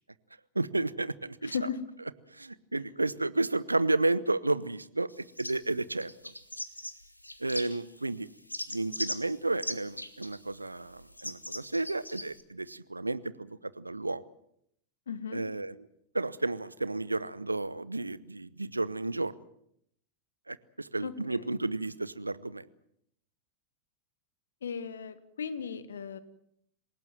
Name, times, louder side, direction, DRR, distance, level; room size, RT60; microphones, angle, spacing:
voice 1, 0.5-1.6 2.3-5.1 5.4-6.1 7.4-8.3 8.7-14.2 15.3-15.9 16.1-19.3 20.5-22.7, right 2 dB, 85° right, 18 dB, 0.9 m, -32 dB
voice 2, 1.4-1.8 15.1-15.4 21.0-21.5 24.6-26.2, left 6 dB, 65° left, 14 dB, 1.8 m, -36 dB
sound 1, 5.1-5.7 6.0-8.0 8.3-12.4, left 1 dB, 85° left, 1.6 m, -40 dB
27.0 x 18.0 x 7.7 m, 0.72 s
figure-of-eight pair, 90°, 0 cm